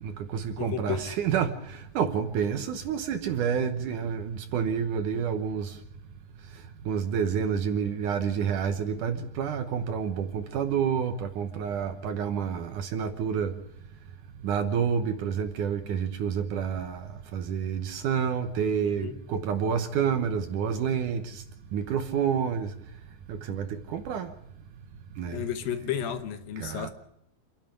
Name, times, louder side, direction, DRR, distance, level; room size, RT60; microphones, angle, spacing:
voice 1, 0.0-1.0 1.2-5.8 6.9-13.5 14.4-21.4 21.7-22.7 23.3-24.3 25.2-25.4 26.6-26.9, right 7 dB, 70° right, 8 dB, 2.3 m, -29 dB
voice 2, 0.6-1.1 18.8-19.2 25.3-26.9, left 9 dB, 75° left, 9 dB, 2.7 m, -33 dB
27.0 x 11.0 x 8.9 m, 0.79 s
omnidirectional pair, 4.4 m